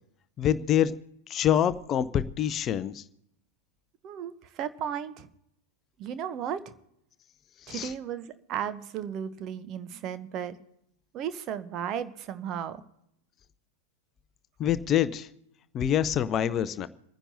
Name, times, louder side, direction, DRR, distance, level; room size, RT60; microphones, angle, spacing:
voice 1, 0.4-0.9 1.3-3.0 7.7-7.9 14.6-15.3 15.7-16.9, left 10 dB, 30° left, 15 dB, 0.5 m, -26 dB
voice 2, 4.0-5.3 6.0-6.7 7.7-10.6 11.1-12.8, right 9 dB, 35° right, 12 dB, 0.8 m, -35 dB
28.0 x 9.9 x 2.7 m, 0.77 s
figure-of-eight pair, 90°, 0 cm